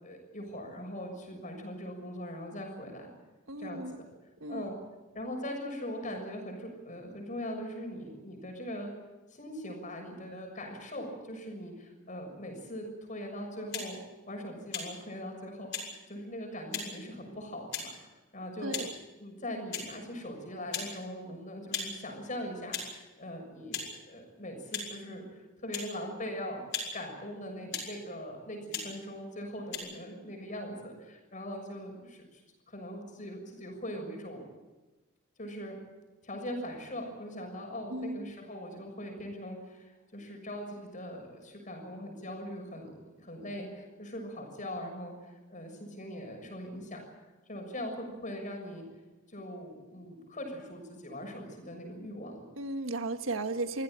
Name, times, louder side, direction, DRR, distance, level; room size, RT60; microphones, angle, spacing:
voice 1, 0.0-3.1 3.6-3.9 4.5-4.8 5.1-8.9 9.3-14.0 14.3-17.9 18.3-18.8 19.2-25.2 25.6-26.6 26.9-32.4 32.7-34.5 35.4-35.8 36.2-45.1 45.5-47.0 47.5-48.8 49.3-52.5, equal, 40° left, 3 dB, 6.7 m, -41 dB
voice 2, 3.5-4.0 4.4-4.7 18.6-18.9 37.9-38.3 52.6-53.8, right 2 dB, 75° right, 9 dB, 1.6 m, -35 dB
sound 1, 13.7-13.9 14.7-14.9 15.7-15.9 16.7-16.9 17.7-17.9 18.7-18.9 19.7-19.9 20.7-20.9 21.7-21.9 22.7-22.9 23.7-23.9 24.7-24.9 25.7-25.9 26.7-26.9 27.7-27.9 28.7-28.9 29.7-29.8, left 6 dB, 60° left, 6.9 m, -36 dB
25.0 x 16.0 x 8.9 m, 1.1 s
head